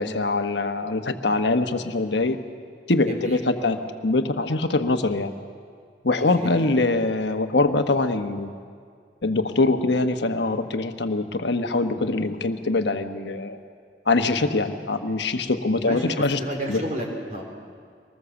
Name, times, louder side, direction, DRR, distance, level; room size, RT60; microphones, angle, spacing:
voice 1, 0.0-2.4 2.9-5.3 6.0-8.5 9.2-13.6 14.1-16.4 16.7-16.8, left 2 dB, 75° left, 7 dB, 1.2 m, -23 dB
voice 2, 3.1-3.7 6.1-6.8 15.8-17.4, right 1 dB, 40° right, 1 dB, 3.4 m, -33 dB
24.0 x 19.5 x 7.1 m, 2.1 s
head